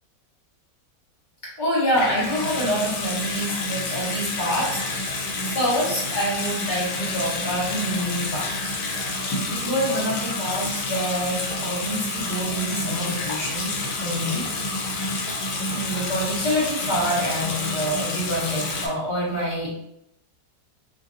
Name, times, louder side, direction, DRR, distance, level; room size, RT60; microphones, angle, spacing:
voice 1, 1.4-4.8 5.4-8.5 9.5-14.5 15.7-19.7, equal, 30° left, -7 dB, 1.0 m, -26 dB
Water tap faucet / Sink (filling or washing) / Bathtub (filling or washing), 1.9-18.9, left 2 dB, 75° left, 1.3 m, -29 dB
3.2 x 2.4 x 2.5 m, 0.79 s
omnidirectional pair, 1.9 m